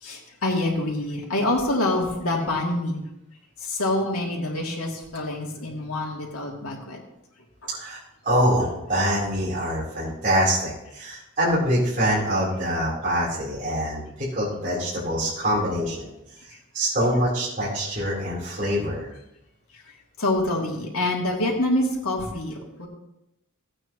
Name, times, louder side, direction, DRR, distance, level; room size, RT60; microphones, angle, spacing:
voice 1, 0.0-3.0 3.6-7.0 20.2-22.9, left 1 dB, 80° left, -1 dB, 2.7 m, -26 dB
voice 2, 7.7-16.1 16.7-19.1, equal, 35° right, -8 dB, 3.9 m, -25 dB
16.0 x 8.9 x 3.1 m, 0.87 s
head